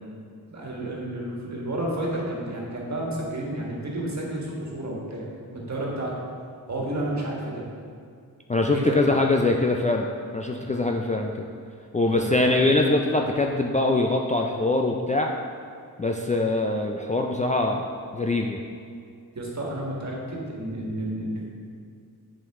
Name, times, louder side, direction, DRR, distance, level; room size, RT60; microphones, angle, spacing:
voice 1, 0.5-6.1 6.7-7.6 8.7-9.0 12.0-12.6 19.4-21.5, right 1 dB, 45° right, -3 dB, 1.7 m, -31 dB
voice 2, 8.5-10.1 10.3-11.3 11.9-15.3 16.0-17.8 18.1-18.6, left 2 dB, 20° left, 1 dB, 0.4 m, -23 dB
7.6 x 5.3 x 3.6 m, 2.3 s
cardioid pair, 70°, 39 cm